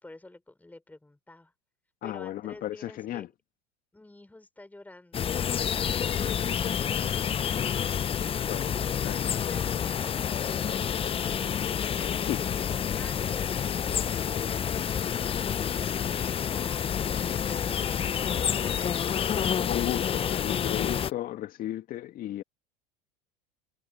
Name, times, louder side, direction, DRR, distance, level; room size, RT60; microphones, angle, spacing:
voice 1, 0.0-1.5 2.0-3.3 3.9-5.2 12.2-13.8, left 2 dB, 10° left, 5.2 m, -50 dB
voice 2, 2.0-3.3 8.5-8.7 9.0-9.4 12.2-12.5 19.7-22.4, left 13 dB, 45° left, 2.0 m, -34 dB
sound 1, 5.1-21.1, left 8 dB, 25° left, 0.9 m, -29 dB
sound 2, 7.0-19.0, left 17 dB, 75° left, 1.8 m, -52 dB
hypercardioid pair, 85°, 21 cm